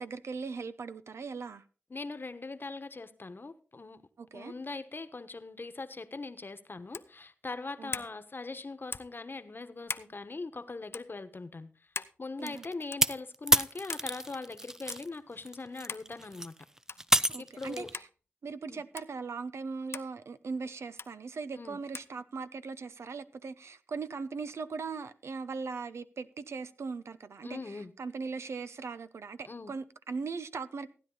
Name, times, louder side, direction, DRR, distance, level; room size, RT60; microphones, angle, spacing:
voice 1, 0.0-1.6 4.2-4.5 7.8-8.0 12.4-12.6 17.3-17.8 18.4-30.9, right 4 dB, 85° right, 0.8 m, -39 dB
voice 2, 1.9-4.0 4.3-11.7 12.2-16.5 17.4-17.9 18.7-18.8 21.6-21.8 27.4-27.9 29.5-29.7, left 3 dB, 50° left, 1.2 m, -41 dB
sound 1, 6.9-7.2 7.9-8.1 8.9-9.2 9.9-10.1 10.9-11.1 12.0-12.2 12.9-13.1 13.9-14.1 14.9-15.0 15.9-16.1 16.9-17.1 17.9-18.1 19.0-19.1 19.9-20.1 21.0-21.1 21.9-22.1, left 4 dB, 65° left, 0.7 m, -40 dB
sound 2, 12.5-15.1 15.4-17.9, right 1 dB, 10° right, 0.5 m, -29 dB
15.5 x 9.8 x 3.9 m
cardioid pair, 45°, 5 cm